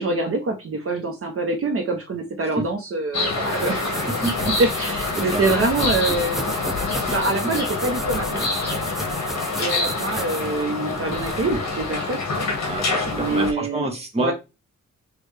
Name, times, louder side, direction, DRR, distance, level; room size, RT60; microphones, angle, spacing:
voice 1, 0.0-6.5 7.1-8.4 9.6-12.2 13.1-13.9 14.2-14.3, right 2 dB, 50° right, 0.7 m, -25 dB
sound 1, 3.1-13.5, left 3 dB, 60° left, 1.3 m, -26 dB
sound 2, 3.3-11.6, equal, ahead, 0.4 m, -34 dB
voice 2, 4.1-4.5 5.1-5.4 7.1-7.2 7.4-7.5 12.7-14.3, right 2 dB, 20° right, 1.0 m, -27 dB
6.3 x 2.3 x 3.2 m
wide cardioid pair, 170°, 30 cm